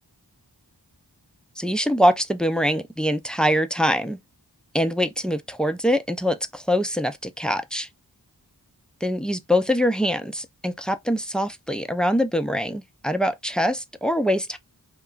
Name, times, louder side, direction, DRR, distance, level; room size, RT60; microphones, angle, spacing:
voice 1, 1.6-4.2 4.7-7.9 9.0-14.6, equal, ahead, 0.3 m, -23 dB
2.9 x 2.3 x 2.4 m
wide cardioid pair, 50°, 39 cm